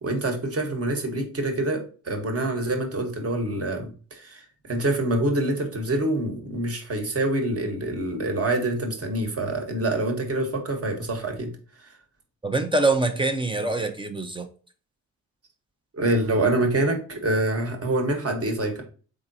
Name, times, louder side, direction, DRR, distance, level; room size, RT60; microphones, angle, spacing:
voice 1, 0.0-11.5 11.8-11.9 15.9-18.8, right 2 dB, 40° right, 1.2 m, -26 dB
voice 2, 12.4-14.5, right 2 dB, 15° right, 0.6 m, -24 dB
3.7 x 3.6 x 2.7 m
supercardioid pair, 55°, 37 cm